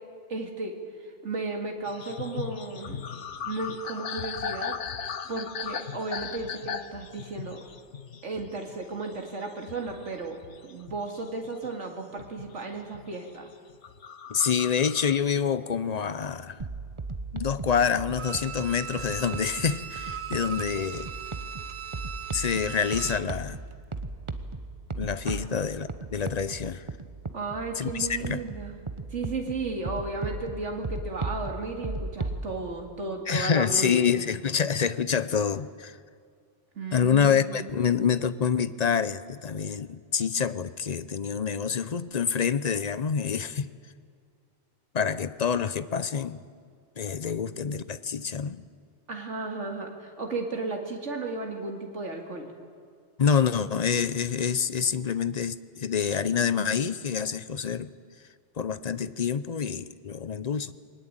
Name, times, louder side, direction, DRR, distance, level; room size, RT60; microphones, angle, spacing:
voice 1, 0.3-0.8 1.2-3.0 3.4-4.8 5.3-7.6 8.2-13.5 25.2-25.4 27.3-28.8 29.1-34.0 36.8-37.8 49.1-52.5, right 3 dB, 80° right, 2 dB, 2.7 m, -34 dB
sound 1, 1.9-11.8 12.2-13.2 13.7-15.2, left 7 dB, 75° left, 1.3 m, -38 dB
voice 2, 14.3-16.6 17.3-21.1 22.3-23.6 25.0-26.9 27.8-28.4 33.3-36.0 36.9-43.7 44.9-46.4 47.0-48.6 53.2-57.9 58.6-60.7, left 7 dB, 40° left, 15 dB, 0.7 m, -27 dB
sound 2, 16.6-32.4, right 3 dB, 25° right, 1.0 m, -37 dB
Bowed string instrument, 18.2-23.4 23.7-23.8, right 8 dB, 60° right, 1.1 m, -38 dB
21.5 x 19.5 x 9.0 m, 2.2 s
omnidirectional pair, 1.2 m